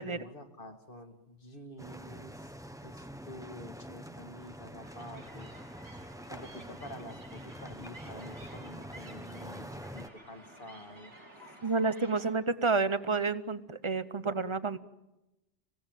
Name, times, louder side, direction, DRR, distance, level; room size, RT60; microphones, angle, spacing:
voice 1, 0.0-2.5 2.8-5.5 6.3-11.6, left 1 dB, 50° left, 5 dB, 2.2 m, -48 dB
sound 1, 1.8-10.1, equal, 5° right, 1.0 m, -45 dB
sound 2, 4.8-12.4, right 1 dB, 75° right, 6.2 m, -53 dB
voice 2, 11.6-14.8, right 4 dB, 30° right, 13 dB, 0.9 m, -30 dB
26.5 x 17.0 x 9.2 m, 0.97 s
omnidirectional pair, 1.2 m